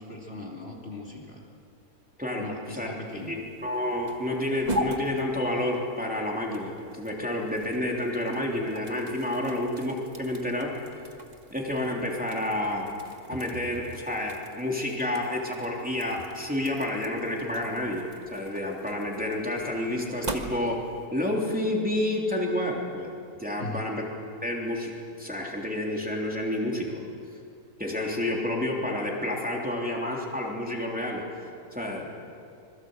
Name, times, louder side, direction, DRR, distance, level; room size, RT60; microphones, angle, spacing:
voice 1, 0.0-1.4 2.4-3.3 23.5-23.9, left 1 dB, 40° left, -1 dB, 2.9 m, -39 dB
sound 1, 3.0-21.1, right 1 dB, 30° right, 1.7 m, -41 dB
voice 2, 3.3-10.8 11.5-12.9 13.3-23.1 23.4-24.0 24.4-27.0 27.8-31.2 31.7-32.1, left 1 dB, 5° right, -2 dB, 3.2 m, -29 dB
26.0 x 21.5 x 8.0 m, 2.4 s
omnidirectional pair, 1.6 m